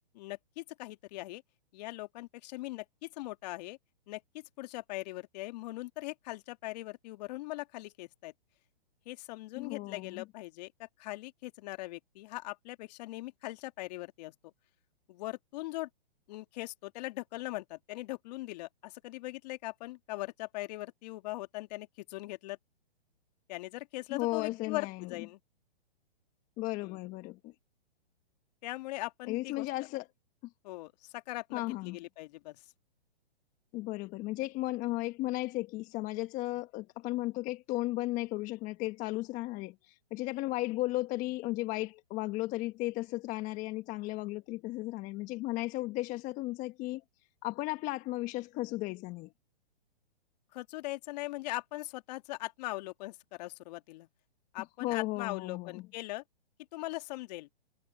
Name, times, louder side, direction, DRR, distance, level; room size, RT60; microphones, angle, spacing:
voice 1, 0.1-1.4 1.7-3.8 4.1-8.3 9.1-14.3 15.1-15.9 16.3-22.6 23.5-25.4 26.8-27.0 28.6-29.7 30.6-32.6 50.5-54.1 54.5-56.2 56.7-57.5, left 19 dB, 40° left, 1.7 m, -40 dB
voice 2, 9.6-10.2 24.1-25.1 26.6-27.5 29.3-30.0 31.5-32.0 33.7-47.0 47.4-49.3 54.8-55.8, left 19 dB, 25° left, 1.2 m, -35 dB
hypercardioid pair, 135°, 31 cm